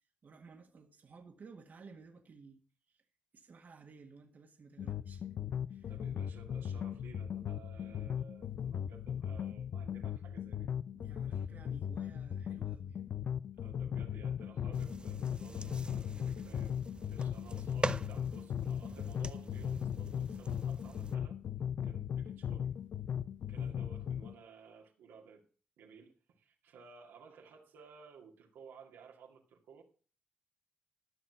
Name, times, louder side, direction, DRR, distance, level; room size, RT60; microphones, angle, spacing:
voice 1, 0.2-2.6 2.9-3.0 3.3-5.3 5.7-5.9 10.9-13.1 23.5-23.8, right 4 dB, 55° right, 1.8 m, -56 dB
sound 1, 4.8-24.3, left 9 dB, 65° left, 0.6 m, -38 dB
voice 2, 5.9-10.7 11.3-11.4 13.6-21.4 21.8-22.7 23.5-25.4 25.8-29.8, right 5 dB, 85° right, 2.1 m, -56 dB
sound 2, 14.7-21.2, right 3 dB, 25° right, 0.8 m, -44 dB
13.5 x 6.1 x 6.0 m
supercardioid pair, 45°, 4 cm